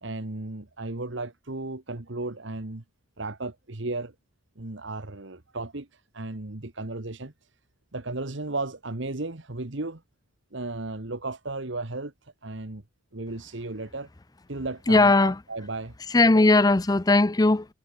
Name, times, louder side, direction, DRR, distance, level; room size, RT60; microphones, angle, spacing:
voice 1, 0.0-2.8 3.2-4.1 4.5-7.3 7.9-10.0 10.5-12.8 13.1-14.1 14.5-15.9, right 2 dB, 60° right, 1.5 m, -34 dB
voice 2, 14.9-15.4 16.1-17.7, left 2 dB, 20° left, 0.5 m, -18 dB
head